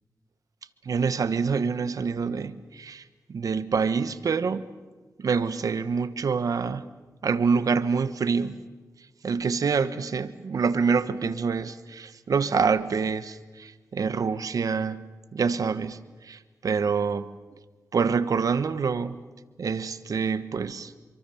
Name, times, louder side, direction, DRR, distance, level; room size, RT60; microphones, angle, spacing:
voice 1, 0.8-3.0 3.3-4.7 5.2-6.8 7.2-8.6 9.2-15.0 15.3-16.0 16.2-17.3 17.9-19.2 19.6-20.9, right 5 dB, 70° right, 1.3 m, -26 dB
27.0 x 24.0 x 7.2 m
cardioid pair, 60°, 6 cm